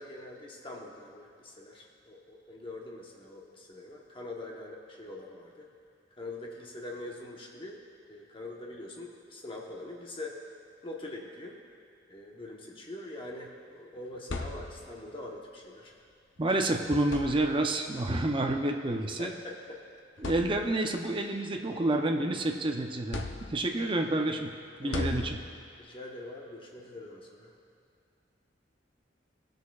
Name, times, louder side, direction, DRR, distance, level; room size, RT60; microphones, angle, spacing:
voice 1, 0.0-5.7 6.2-7.8 8.1-10.4 10.8-11.6 12.1-15.9 19.2-19.8 24.8-25.1 25.8-27.5, left 2 dB, 30° left, -1 dB, 1.0 m, -43 dB
sound 1, 14.0-15.1 16.4-16.5 17.0-17.9 19.0-19.1 19.7-19.8 20.2-21.0 21.5-22.5 23.1-23.9 24.9-25.8, left 2 dB, 85° left, 0.7 m, -38 dB
voice 2, 16.4-19.3 20.2-23.2 23.5-24.5 24.8-25.4, right 2 dB, 30° right, 3 dB, 0.6 m, -29 dB
19.0 x 6.5 x 2.4 m, 2.4 s
head